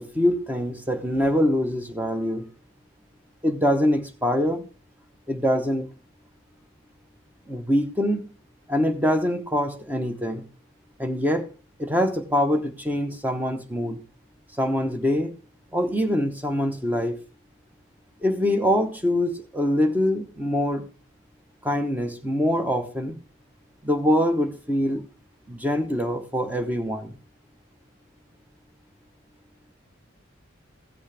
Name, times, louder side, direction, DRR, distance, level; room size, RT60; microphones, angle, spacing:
voice 1, 0.0-2.4 3.4-4.7 5.3-5.9 7.5-8.2 8.7-10.4 11.0-11.5 11.8-14.0 14.6-15.3 15.7-17.1 18.2-20.8 21.6-23.2 23.8-25.0 25.5-27.2, equal, 10° right, 6 dB, 0.9 m, -24 dB
16.0 x 6.3 x 3.4 m, 0.34 s
head